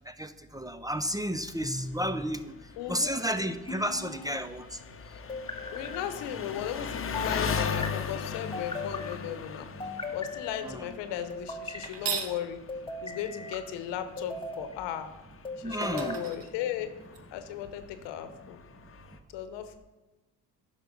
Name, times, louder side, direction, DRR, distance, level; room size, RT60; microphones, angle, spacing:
voice 1, 0.1-2.5 2.9-4.8 10.6-10.9 15.6-16.2, equal, 10° right, 10 dB, 0.4 m, -32 dB
Engine, 1.1-19.2, left 6 dB, 30° left, 0.8 m, -39 dB
sound 1, 1.6-2.3 3.7-4.4 5.3-6.1 7.1-7.9 8.5-9.2 9.8-10.6 11.3-11.9 12.7-13.6 14.2-14.7 15.4-16.3, left 2 dB, 15° left, 1.0 m, -38 dB
voice 2, 2.8-3.2 5.7-9.7 10.1-12.6 13.0-15.1 15.6-16.9 17.3-18.6 19.3-19.8, left 10 dB, 90° left, 10 dB, 1.0 m, -36 dB
sound 2, 11.8-12.4 15.3-15.4 15.8-17.2, right 7 dB, 85° right, 1.1 m, -36 dB
10.5 x 5.8 x 5.3 m, 1.1 s
cardioid pair, 85°, 41 cm